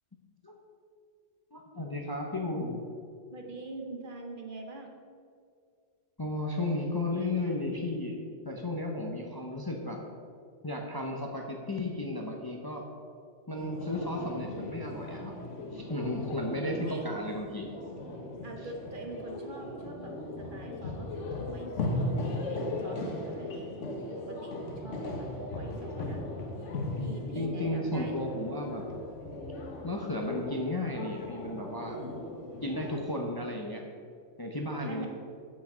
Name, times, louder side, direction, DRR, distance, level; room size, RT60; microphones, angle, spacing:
voice 1, 1.5-2.8 6.2-10.0 10.6-12.8 13.5-15.3 15.7-17.7 27.3-28.8 29.8-32.0 32.6-33.8 34.4-35.1, left 1 dB, 25° left, 1 dB, 0.7 m, -34 dB
voice 2, 3.3-4.9 8.8-9.3 16.7-17.2 18.4-23.7 24.2-26.2 26.6-28.5 31.8-32.7 34.8-35.1, right 2 dB, 50° right, 2 dB, 1.0 m, -44 dB
sound 1, 13.6-33.0, left 2 dB, 85° left, 1.3 m, -37 dB
8.4 x 6.4 x 5.7 m, 2.3 s
omnidirectional pair, 1.2 m